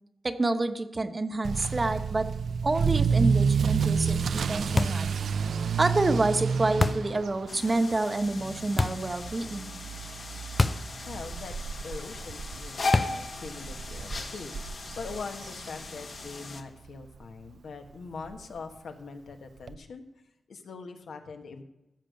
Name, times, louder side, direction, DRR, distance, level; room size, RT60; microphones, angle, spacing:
voice 1, 0.2-2.3 2.6-5.1 5.8-9.8, right 2 dB, 30° right, 8 dB, 0.9 m, -28 dB
Motor vehicle (road) / Accelerating revving vroom, 1.4-16.3 16.6-17.0 17.5-17.6 17.9-18.0 18.3-18.4 19.7-19.8, right 6 dB, 80° right, 0.5 m, -30 dB
sound 1, 4.8-5.1 6.8-7.2 8.8-9.1 10.6-10.9 11.2-11.3 12.9-13.3, left 3 dB, 30° left, 0.4 m, -26 dB
sound 2, 7.5-16.6, left 3 dB, 60° left, 1.3 m, -38 dB
voice 2, 11.1-11.5 11.8-20.0 20.5-21.6, left 4 dB, 85° left, 5 dB, 1.3 m, -42 dB
15.0 x 6.8 x 6.5 m, 0.91 s
wide cardioid pair, 95°, 0 cm